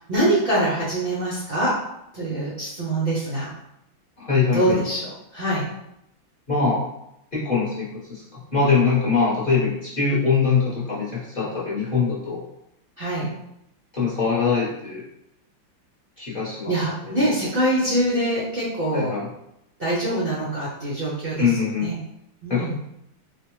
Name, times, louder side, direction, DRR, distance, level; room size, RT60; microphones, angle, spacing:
voice 1, 0.1-1.7 2.1-3.5 4.5-5.0 5.3-5.7 13.0-13.3 16.7-19.1 19.8-21.5 21.8-22.0 22.4-22.8, right 1 dB, 55° right, -7 dB, 0.6 m, -24 dB
voice 2, 4.2-4.8 6.5-6.8 7.3-8.2 8.5-12.4 13.9-15.0 16.2-16.7 17.0-17.1 18.9-19.3 21.4-21.9 22.5-22.7, left 5 dB, 35° left, -9 dB, 1.0 m, -22 dB
4.3 x 2.4 x 3.1 m, 0.81 s
omnidirectional pair, 2.2 m